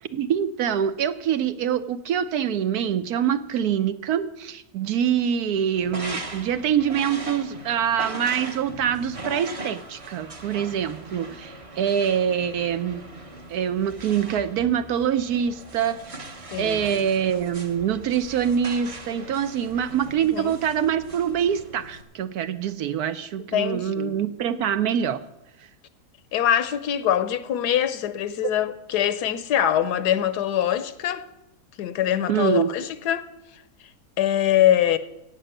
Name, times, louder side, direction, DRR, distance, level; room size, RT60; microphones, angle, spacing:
voice 1, 0.0-13.1 13.5-16.3 16.6-25.2 32.3-32.7, right 8 dB, 75° right, 1.2 m, -25 dB
sound 1, 5.7-22.0, right 1 dB, 25° right, 0.9 m, -40 dB
voice 2, 16.5-16.8 20.3-20.5 23.5-24.2 26.3-31.3 31.8-33.3 34.2-35.0, left 11 dB, 80° left, 1.3 m, -23 dB
17.0 x 6.3 x 7.8 m
omnidirectional pair, 1.7 m